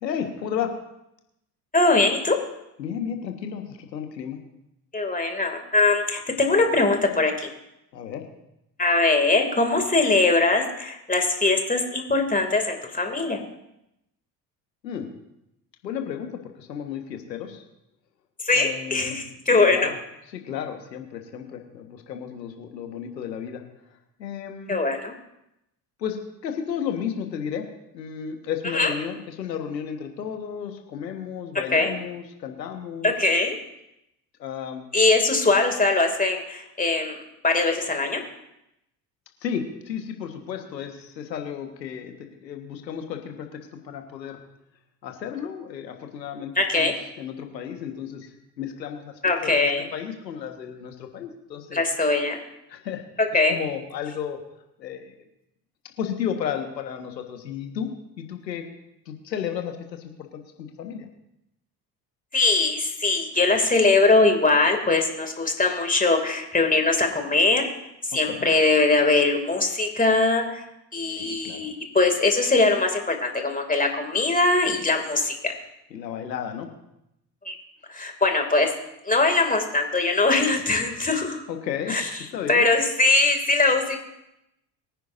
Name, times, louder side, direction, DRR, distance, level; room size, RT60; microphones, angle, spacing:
voice 1, 0.0-0.7 2.8-4.4 7.9-8.2 14.8-15.1 15.8-17.6 18.5-19.2 19.7-19.9 20.3-23.6 24.2-24.7 26.0-26.2 26.4-27.6 27.9-33.1 34.4-34.8 39.4-44.4 45.0-48.3 48.6-51.8 52.7-53.0 53.5-54.4 54.8-55.1 56.0-57.9 58.2-58.6 59.0-61.1 68.3-68.4 71.2-71.6 75.9-76.7 81.5-82.0 82.3-82.7, left 8 dB, 85° left, 5 dB, 1.6 m, -33 dB
voice 2, 1.7-2.4 4.9-7.5 8.8-13.4 18.4-19.9 24.7-25.1 28.7-28.9 31.7-31.9 33.0-33.6 34.9-37.2 37.4-38.2 46.6-47.0 49.2-49.9 51.7-52.4 53.2-53.6 62.3-67.7 68.1-70.6 70.9-75.5 77.4-77.6 77.9-78.7 79.0-81.4 81.9-82.1 82.5-84.0, left 3 dB, 15° left, 4 dB, 2.7 m, -21 dB
23.5 x 10.0 x 2.7 m, 0.84 s
figure-of-eight pair, 60°, 49 cm